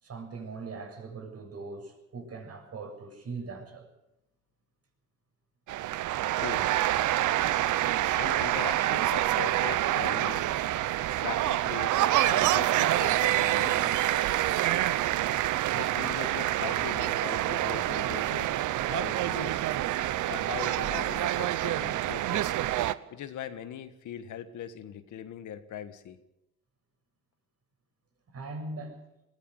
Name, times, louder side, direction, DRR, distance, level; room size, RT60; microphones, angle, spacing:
voice 1, 0.0-3.9 28.3-29.0, right 3 dB, 55° right, 3 dB, 7.4 m, -40 dB
sound 1, 5.7-22.9, right 14 dB, 80° right, 0.8 m, -27 dB
voice 2, 6.4-6.7 8.2-10.5 11.2-14.0 15.8-18.5 18.9-19.6 20.3-22.5 23.1-26.2, left 9 dB, 75° left, 10 dB, 1.7 m, -40 dB
21.0 x 16.5 x 7.9 m, 0.90 s
cardioid pair, 90°, 30 cm